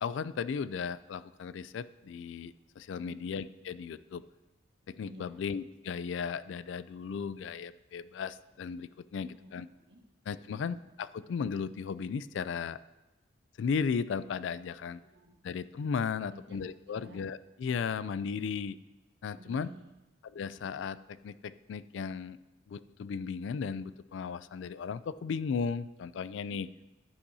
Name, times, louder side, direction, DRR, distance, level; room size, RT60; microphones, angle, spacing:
voice 1, 0.0-4.2 4.9-9.7 10.3-12.8 13.6-15.0 15.4-18.8 19.2-19.7 20.3-22.4 22.7-26.7, left 6 dB, 75° left, 16 dB, 0.3 m, -35 dB
voice 2, 2.9-3.2 5.1-5.4 9.2-10.0 10.3-10.6 14.8-15.3 16.2-16.6 16.9-17.2 19.3-19.9 26.5-26.8, right 1 dB, 60° right, 2 dB, 1.4 m, -54 dB
11.5 x 10.0 x 2.7 m, 1.1 s
head